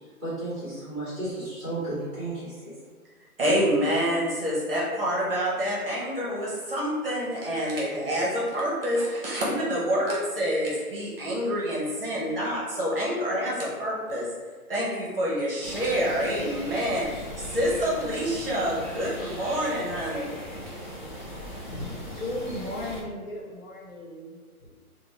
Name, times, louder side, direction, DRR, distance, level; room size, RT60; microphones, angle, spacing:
voice 1, 0.2-2.7, right 2 dB, ahead, -12 dB, 0.8 m, -33 dB
voice 2, 3.4-14.3 14.7-20.3, equal, 40° right, -6 dB, 0.7 m, -27 dB
sound 1, 15.6-23.0, equal, 35° left, 0.4 m, -39 dB
voice 3, 21.6-24.7, left 1 dB, 65° left, -3 dB, 1.0 m, -36 dB
2.7 x 2.0 x 3.0 m, 1.4 s
hypercardioid pair, 160°, 45 cm